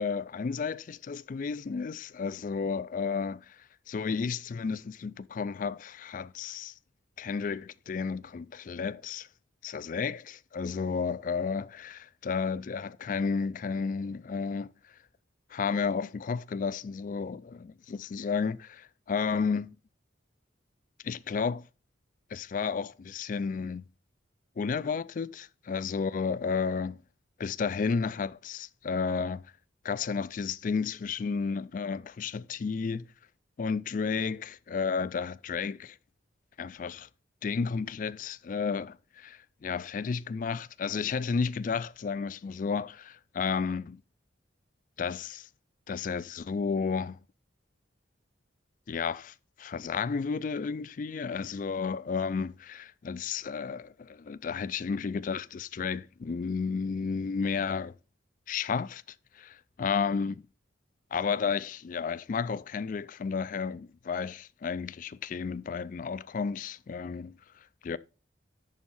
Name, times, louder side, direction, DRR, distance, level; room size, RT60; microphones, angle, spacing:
voice 1, 0.0-6.7 7.2-9.3 9.6-14.7 15.5-19.7 21.0-21.6 22.3-23.8 24.6-27.0 27.4-29.4 29.8-33.1 33.6-36.0 36.6-37.1 37.4-44.0 45.0-45.5 45.9-47.2 48.9-57.9 58.5-59.0 59.3-60.4 61.1-68.0, left 5 dB, 40° left, 0.3 m, -32 dB
10.5 x 3.6 x 5.5 m
head